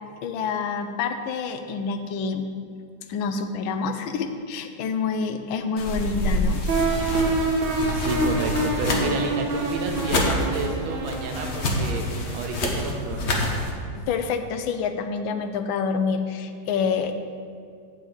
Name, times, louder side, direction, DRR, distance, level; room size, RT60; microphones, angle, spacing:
voice 1, 0.2-2.5 3.1-6.6 14.0-17.2, left 5 dB, 85° left, 8 dB, 1.4 m, -27 dB
sound 1, 5.8-13.7, left 1 dB, 50° left, 0.9 m, -27 dB
sound 2, 6.7-13.5, right 2 dB, 70° right, 1.7 m, -27 dB
voice 2, 7.7-12.0 12.3-13.4, right 4 dB, 85° right, 4 dB, 1.6 m, -30 dB
8.3 x 7.1 x 3.9 m, 2.3 s
omnidirectional pair, 2.1 m